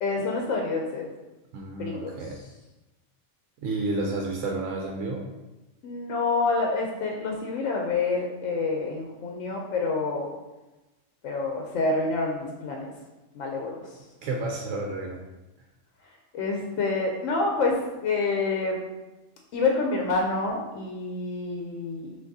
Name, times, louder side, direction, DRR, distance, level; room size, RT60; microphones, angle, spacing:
voice 1, 0.0-1.1 1.8-2.2 5.8-10.3 11.2-12.9 13.3-13.9 16.3-18.8 19.5-22.2, left 3 dB, 75° left, 0 dB, 0.9 m, -27 dB
voice 2, 1.5-2.4 3.6-5.3 14.2-15.2, right 2 dB, 75° right, 0 dB, 0.9 m, -31 dB
5.8 x 2.6 x 2.6 m, 1.1 s
omnidirectional pair, 1.3 m